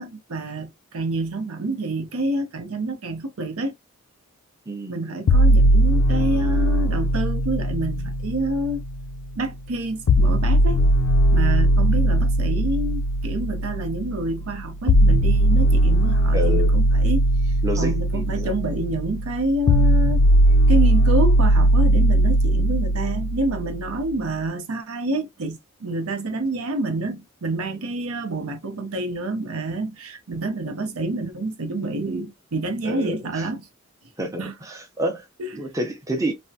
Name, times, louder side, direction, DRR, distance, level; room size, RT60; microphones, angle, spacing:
voice 1, 0.0-3.7 4.9-8.8 9.4-10.8 11.3-17.3 17.8-20.2 20.7-33.7 34.4-34.5 35.4-35.5, right 2 dB, 80° right, 0.7 m, -28 dB
voice 2, 4.7-5.4 11.7-11.8 16.3-16.7 17.6-18.8 32.8-33.5 34.2-35.3 35.5-36.3, equal, 15° right, 0.6 m, -29 dB
sound 1, 5.3-9.3 10.1-24.1, right 1 dB, 85° left, 0.4 m, -19 dB
3.4 x 2.1 x 2.7 m
head